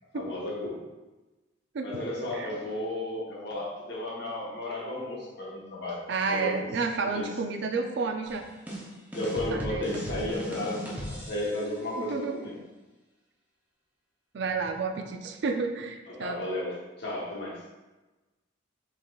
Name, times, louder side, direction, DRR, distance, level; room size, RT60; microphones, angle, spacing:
voice 1, 0.1-0.9 1.8-6.5 7.1-7.3 9.1-12.5 16.1-17.6, left 1 dB, 55° left, -4 dB, 1.1 m, -34 dB
voice 2, 6.1-8.4 9.5-10.2 12.0-12.5 14.3-16.4, right 4 dB, 60° right, 5 dB, 0.4 m, -31 dB
sound 1, 8.3-11.8, equal, 10° right, 0.5 m, -37 dB
5.2 x 3.7 x 2.3 m, 1.1 s
head